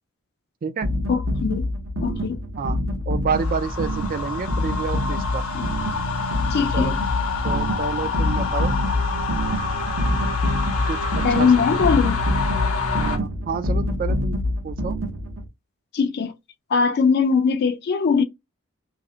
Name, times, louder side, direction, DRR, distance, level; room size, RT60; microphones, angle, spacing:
sound 1, 0.8-15.5, left 1 dB, 65° right, 0.8 m, -26 dB
voice 1, 1.1-1.7 2.0-2.4 5.5-5.7 6.5-7.0 11.2-12.2 15.9-16.3 16.7-18.2, left 5 dB, 50° left, 0.3 m, -21 dB
voice 2, 2.6-5.4 6.7-7.0 7.4-8.7 10.9-11.8 12.9-14.4 14.6-15.0, right 5 dB, 40° right, 0.3 m, -29 dB
sound 2, 3.3-13.2, left 4 dB, 75° left, 0.8 m, -27 dB
2.5 x 2.0 x 2.5 m
head